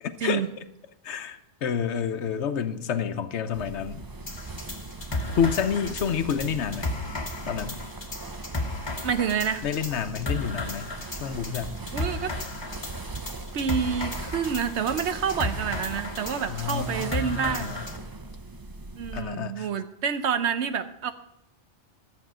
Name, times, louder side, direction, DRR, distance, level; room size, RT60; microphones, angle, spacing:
voice 1, 0.0-0.4 1.0-4.0 5.4-6.9 7.5-7.8 9.6-11.8 16.5-17.9 19.1-19.7, left 7 dB, 75° left, 10 dB, 1.0 m, -29 dB
sound 1, 3.5-19.2, right 3 dB, 30° right, 0.4 m, -39 dB
sound 2, 4.3-18.0, left 2 dB, 25° left, 1.1 m, -35 dB
voice 2, 9.0-9.6 11.9-12.3 13.5-17.8 19.0-21.1, right 7 dB, 70° right, 10 dB, 1.0 m, -28 dB
11.5 x 7.8 x 6.1 m, 0.79 s
omnidirectional pair, 1.2 m